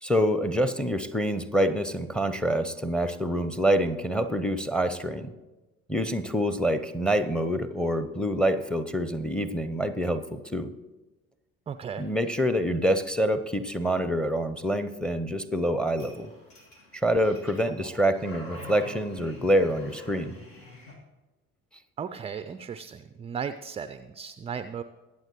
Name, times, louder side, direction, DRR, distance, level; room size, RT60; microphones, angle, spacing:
voice 1, 0.0-5.3 5.9-10.7 12.0-16.3 16.9-20.3, equal, ahead, 11 dB, 0.7 m, -26 dB
voice 2, 11.7-12.0 22.0-24.8, right 7 dB, 15° right, 11 dB, 0.3 m, -36 dB
sound 1, 16.0-21.0, left 1 dB, 65° left, 2.1 m, -46 dB
22.5 x 7.7 x 3.1 m, 1.1 s
figure-of-eight pair, 50°, 41 cm